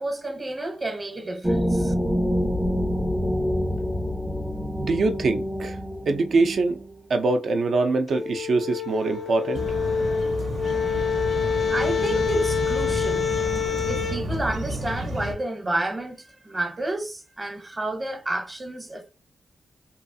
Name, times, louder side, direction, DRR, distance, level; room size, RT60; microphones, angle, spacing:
voice 1, 0.0-1.9 11.5-13.3 13.9-19.1, right 1 dB, 25° right, 0.9 m, -30 dB
sound 1, 1.4-6.9, equal, 5° right, 0.4 m, -26 dB
voice 2, 4.8-5.8 6.1-6.8 7.1-9.6, right 3 dB, 70° right, 0.6 m, -23 dB
sound 2, 8.1-14.2, left 6 dB, 65° left, 0.5 m, -26 dB
sound 3, 9.5-15.3, right 1 dB, 90° right, 0.9 m, -31 dB
3.0 x 2.4 x 2.7 m
cardioid pair, 90°, 0 cm